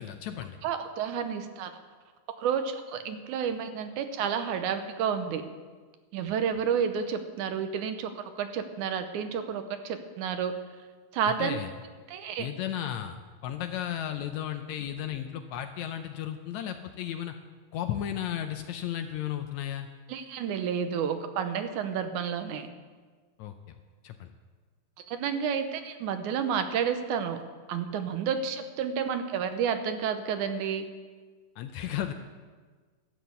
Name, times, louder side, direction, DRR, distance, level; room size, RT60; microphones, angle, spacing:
voice 1, 0.0-0.6 11.4-11.7 12.4-13.2 13.4-17.3 17.7-19.9 23.4-23.8 24.0-24.3 31.6-32.1, left 10 dB, 80° left, 7 dB, 1.7 m, -34 dB
voice 2, 0.6-1.7 2.4-5.4 6.1-10.5 11.1-11.6 12.1-12.5 20.1-22.7 25.1-27.4 27.7-30.9, right 7 dB, 75° right, 8 dB, 2.2 m, -30 dB
12.5 x 7.6 x 8.0 m, 1.4 s
omnidirectional pair, 3.6 m